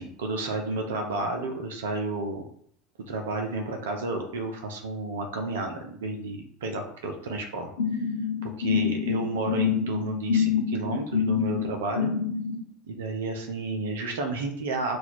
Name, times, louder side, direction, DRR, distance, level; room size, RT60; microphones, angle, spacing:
voice 1, 0.0-2.5 3.1-7.7 8.4-12.1 12.9-15.0, right 2 dB, 70° right, 4 dB, 0.6 m, -31 dB
sound 1, 7.8-12.6, left 7 dB, 85° left, 0.9 m, -26 dB
4.0 x 2.4 x 4.4 m, 0.64 s
figure-of-eight pair, 75°, 0 cm